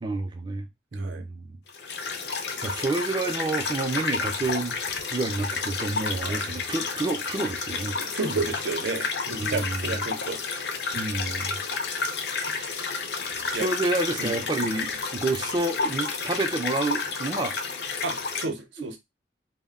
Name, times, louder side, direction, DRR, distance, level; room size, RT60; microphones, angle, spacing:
voice 1, 0.0-1.6 2.6-8.0 8.3-8.4 9.3-10.0 10.9-11.6 13.5-17.6, right 2 dB, 25° right, 0.4 m, -29 dB
voice 2, 0.9-1.3 6.3-6.4 8.0-10.4 12.5-12.9 13.5-13.7 14.2-14.4 18.0-19.0, right 3 dB, 85° right, 0.6 m, -32 dB
sound 1, 1.7-18.4, left 4 dB, 65° left, 0.5 m, -31 dB
2.1 x 2.0 x 3.5 m
head